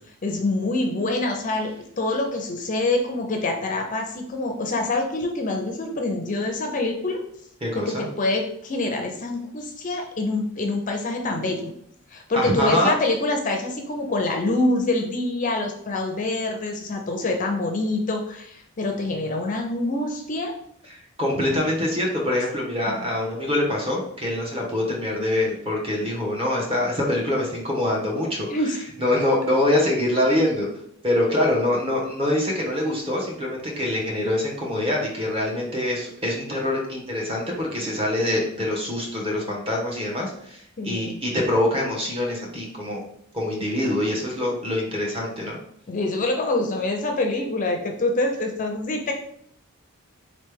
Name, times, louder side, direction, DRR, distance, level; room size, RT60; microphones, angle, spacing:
voice 1, 0.2-7.2 7.7-11.7 12.1-20.5 23.0-23.1 28.5-28.8 40.8-41.2 45.9-49.1, left 2 dB, 35° left, 3 dB, 0.5 m, -25 dB
voice 2, 7.6-8.1 12.3-12.9 20.9-28.7 29.0-30.7 31.0-43.0 43.3-45.6, left 1 dB, 25° right, -2 dB, 1.1 m, -24 dB
4.0 x 3.2 x 3.4 m, 0.69 s
head